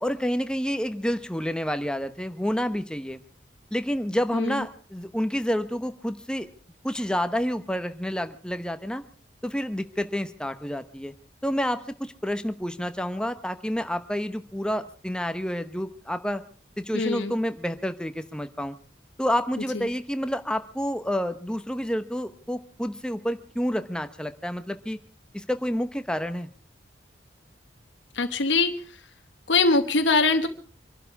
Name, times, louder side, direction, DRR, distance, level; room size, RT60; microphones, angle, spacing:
voice 1, 0.0-3.2 3.7-6.5 6.8-9.0 9.4-11.1 11.4-16.4 16.8-18.7 19.2-25.0 25.3-26.5, equal, 5° left, 9 dB, 0.9 m, -29 dB
voice 2, 4.3-4.7 16.9-17.3 19.7-19.9 28.1-29.0 29.5-30.5, left 3 dB, 80° left, 6 dB, 1.1 m, -23 dB
25.0 x 12.0 x 4.8 m, 0.41 s
head